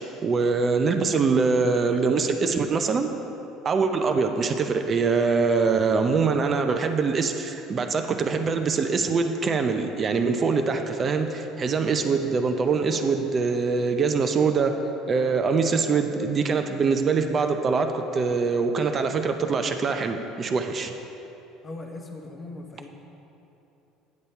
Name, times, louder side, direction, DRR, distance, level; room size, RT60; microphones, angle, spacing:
voice 1, 0.2-3.1 3.6-14.8 15.1-20.9, right 4 dB, 30° right, 6 dB, 0.5 m, -23 dB
voice 2, 21.6-22.9, left 2 dB, 20° left, 2 dB, 0.9 m, -39 dB
9.5 x 7.0 x 4.4 m, 3.0 s
cardioid pair, 140°, 0 cm